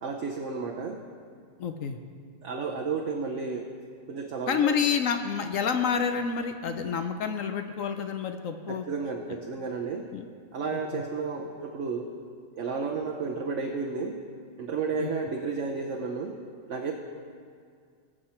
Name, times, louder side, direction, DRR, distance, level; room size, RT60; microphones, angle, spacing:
voice 1, 0.0-1.0 2.4-3.7 4.1-4.7 8.7-10.0 10.5-12.1 12.5-14.2 14.6-16.4 16.7-16.9, right 4 dB, 55° right, 1 dB, 1.0 m, -32 dB
voice 2, 1.6-2.0 4.5-8.8 10.1-10.3 10.9-11.0 15.0-15.1, left 6 dB, 65° left, 7 dB, 1.0 m, -28 dB
19.5 x 7.7 x 4.4 m, 2.1 s
omnidirectional pair, 1.7 m